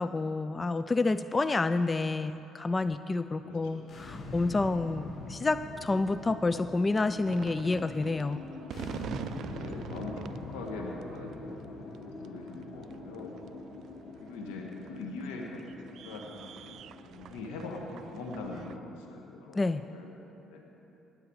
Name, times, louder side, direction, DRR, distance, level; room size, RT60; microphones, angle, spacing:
voice 1, 0.0-8.5 19.5-19.8, left 3 dB, 25° left, 12 dB, 0.3 m, -29 dB
voice 2, 3.4-3.8 9.4-13.3 14.2-15.6 16.0-16.8 17.0-20.1 20.4-20.6, left 3 dB, 85° left, 0 dB, 1.6 m, -42 dB
sound 1, 3.8-18.8, left 2 dB, 45° left, 1.5 m, -44 dB
sound 2, 7.2-18.8, right 9 dB, 65° right, 0.3 m, -46 dB
20.0 x 8.1 x 4.8 m, 2.9 s
supercardioid pair, 70°, 0 cm